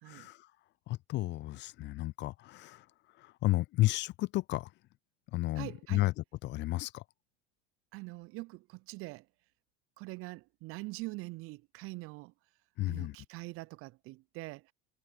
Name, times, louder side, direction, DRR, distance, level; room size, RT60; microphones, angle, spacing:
voice 1, 0.1-0.5 0.9-2.9 3.2-4.7 5.3-6.1 6.4-7.0 12.8-13.2, left 18 dB, 40° left, 0.4 m, -32 dB
voice 2, 5.6-6.0 7.9-9.3 10.0-12.3 12.9-14.7, right 23 dB, 45° right, 0.4 m, -44 dB
hypercardioid pair, 90°, 30 cm